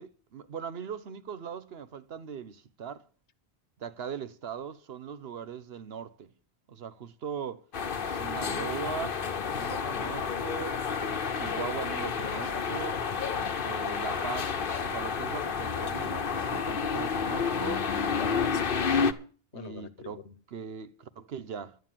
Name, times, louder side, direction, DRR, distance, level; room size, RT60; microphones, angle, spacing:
voice 1, 0.0-3.1 3.8-6.3 6.7-7.6 8.1-9.2 9.6-13.0 13.6-17.9 19.5-21.8, right 7 dB, 65° right, 1.0 m, -40 dB
sound 1, 7.7-19.1, left 6 dB, 55° left, 1.1 m, -30 dB
voice 2, 18.0-19.1 19.5-20.3, left 7 dB, 85° left, 1.3 m, -44 dB
11.5 x 9.3 x 7.5 m
omnidirectional pair, 1.1 m